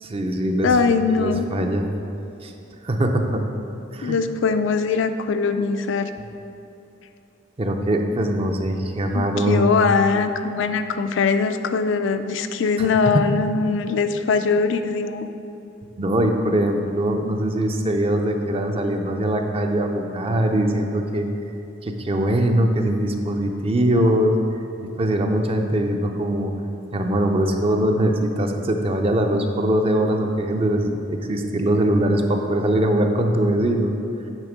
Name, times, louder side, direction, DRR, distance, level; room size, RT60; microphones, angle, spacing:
voice 1, 0.0-0.7 1.2-1.8 2.4-2.5 2.8-3.6 3.9-4.2 7.6-9.7 12.8-12.9 13.1-13.2 16.0-21.3 21.8-24.4 25.0-26.5 26.9-34.0, right 1 dB, 30° right, 4 dB, 0.5 m, -22 dB
voice 2, 0.6-1.5 4.0-6.1 9.1-15.3, left 5 dB, 75° left, 9 dB, 0.4 m, -21 dB
9.0 x 3.6 x 5.1 m, 2.8 s
head